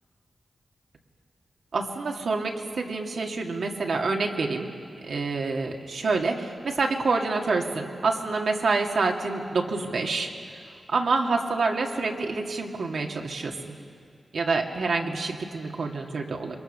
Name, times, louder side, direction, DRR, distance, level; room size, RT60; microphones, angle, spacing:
voice 1, 1.7-4.7 5.0-10.3 10.9-13.8 14.3-16.5, right 3 dB, 75° right, 1 dB, 2.2 m, -27 dB
27.0 x 22.5 x 6.8 m, 2.4 s
wide cardioid pair, 85°, 0 cm